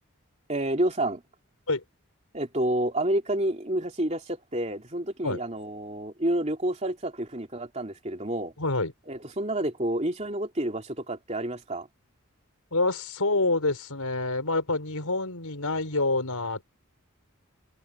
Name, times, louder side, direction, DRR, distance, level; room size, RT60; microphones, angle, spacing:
voice 1, 0.5-1.2 2.3-8.5 9.1-11.9, right 1 dB, 30° right, 3.1 m, -29 dB
voice 2, 8.6-8.9 12.7-16.6, left 2 dB, 90° left, 4.8 m, -27 dB
open air
head